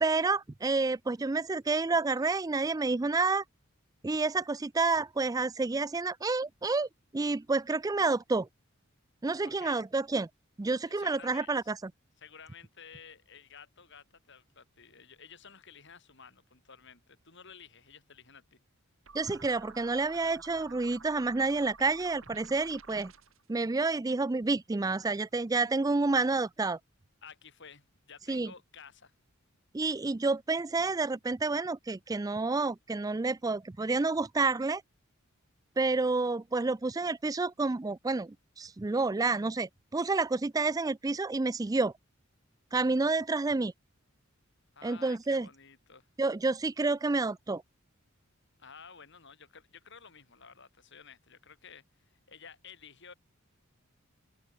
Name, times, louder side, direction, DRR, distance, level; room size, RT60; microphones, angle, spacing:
voice 1, 0.0-3.4 4.0-6.9 7.1-8.5 9.2-10.3 10.6-11.7 19.1-23.1 23.5-26.8 28.3-28.5 29.7-34.8 35.8-41.9 42.7-43.7 44.8-45.5 46.2-47.6, right 3 dB, 15° right, 0.4 m, -29 dB
voice 2, 9.4-9.8 10.8-11.7 12.2-18.6 27.2-29.1 43.0-43.2 44.7-46.1 48.6-53.1, left 6 dB, 60° left, 7.3 m, -53 dB
sound 1, 19.0-23.4, right 4 dB, 75° right, 6.1 m, -52 dB
open air
head